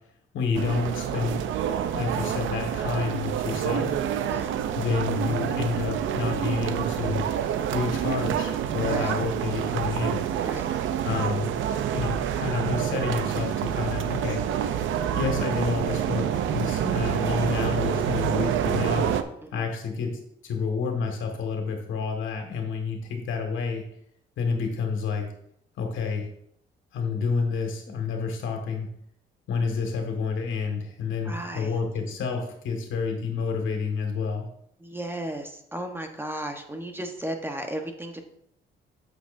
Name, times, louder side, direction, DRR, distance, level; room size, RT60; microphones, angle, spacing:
voice 1, 0.3-1.4 1.9-4.0 4.7-7.3 7.7-10.2 11.0-11.5 11.9-14.4 15.1-19.1 19.5-23.8 24.4-25.3 25.8-26.3 26.9-28.9 29.5-34.5, left 5 dB, 80° left, 3 dB, 1.8 m, -29 dB
sound 1, 0.5-19.2, right 9 dB, 75° right, 0.6 m, -27 dB
voice 2, 18.9-19.7 31.2-31.8 34.8-38.2, right 1 dB, 10° right, 4 dB, 1.1 m, -35 dB
8.8 x 7.6 x 2.6 m, 0.72 s
cardioid pair, 90°, 20 cm